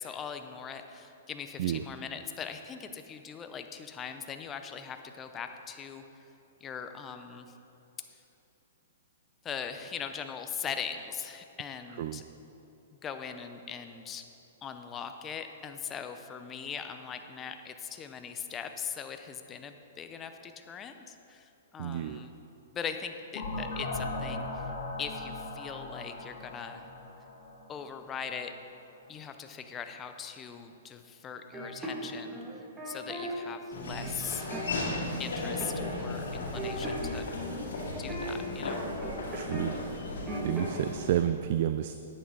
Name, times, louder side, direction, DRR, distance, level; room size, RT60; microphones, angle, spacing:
voice 1, 0.0-6.1 6.6-7.5 9.4-12.2 13.0-14.2 14.6-22.3 22.7-24.7 25.0-26.9 27.7-28.5 29.1-32.4 32.8-34.5 35.2-37.3 38.0-38.8, left 7 dB, 20° left, 7 dB, 0.6 m, -40 dB
voice 2, 21.8-22.2 39.3-39.8 40.4-41.9, right 11 dB, 55° right, 10 dB, 0.3 m, -30 dB
sound 1, 23.3-28.0, left 2 dB, 60° left, 2.5 m, -38 dB
sound 2, 31.5-33.3 33.7-34.9 35.6-36.0 36.2-39.7 40.0-40.8, right 1 dB, 15° right, 1.9 m, -39 dB
Laughter / Walk footsteps, 33.7-41.2, left 2 dB, 80° left, 2.2 m, -36 dB
11.0 x 8.7 x 3.9 m, 2.9 s
hypercardioid pair, 125°, 0 cm